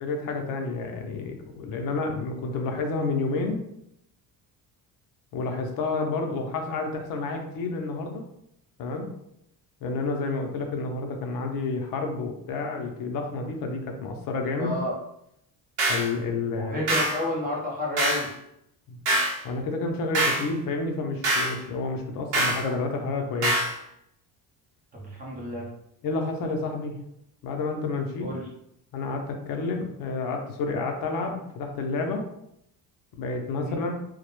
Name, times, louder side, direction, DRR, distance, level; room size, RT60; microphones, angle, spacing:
voice 1, 0.0-3.6 5.3-8.2 8.8-9.1 9.8-14.8 15.9-16.9 18.9-19.0 19.4-23.6 26.0-27.0 27.4-28.3 28.9-32.3 33.1-33.9, left 3 dB, 60° left, 3 dB, 0.5 m, -30 dB
voice 2, 14.6-14.9 16.6-18.3 22.6-22.8 24.9-25.7 28.2-28.4 33.6-33.8, left 1 dB, 25° right, -3 dB, 0.5 m, -31 dB
sound 1, 15.8-16.1 16.9-17.2 18.0-18.3 19.0-19.4 20.1-20.5 21.2-21.6 22.3-22.6 23.4-23.7, right 1 dB, 90° right, 0.9 m, -24 dB
2.1 x 2.0 x 2.9 m, 0.77 s
cardioid pair, 150°, 38 cm